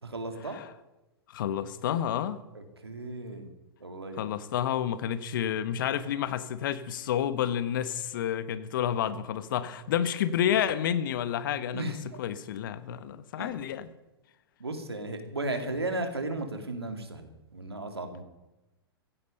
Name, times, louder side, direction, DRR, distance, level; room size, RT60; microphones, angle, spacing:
voice 1, 0.0-0.6 2.5-3.5 3.8-4.3 11.7-12.2 13.4-13.7 14.6-18.2, right 2 dB, 85° right, 6 dB, 2.6 m, -35 dB
voice 2, 1.3-2.4 4.2-11.8 12.2-13.9, left 10 dB, 55° left, 13 dB, 1.4 m, -30 dB
16.5 x 15.5 x 5.5 m, 1.0 s
figure-of-eight pair, 105°, 13 cm